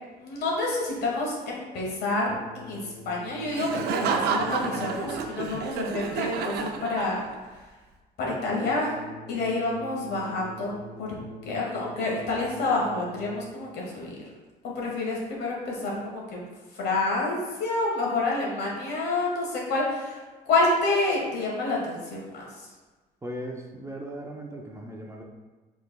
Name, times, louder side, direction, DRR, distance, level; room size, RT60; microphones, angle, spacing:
voice 1, 0.2-7.2 8.2-9.0 9.3-11.1 11.4-14.1 14.6-16.5 16.7-20.2 20.5-22.7, left 2 dB, 70° left, -3 dB, 1.4 m, -28 dB
sound 1, 2.2-5.7 8.6-13.7, left 1 dB, 35° left, 0.4 m, -45 dB
Laughter, 3.5-7.5, right 5 dB, 70° right, 0.4 m, -30 dB
voice 2, 23.2-25.2, right 1 dB, 15° right, 0 dB, 0.5 m, -38 dB
5.6 x 3.4 x 2.2 m, 1.3 s
cardioid pair, 110°, 17 cm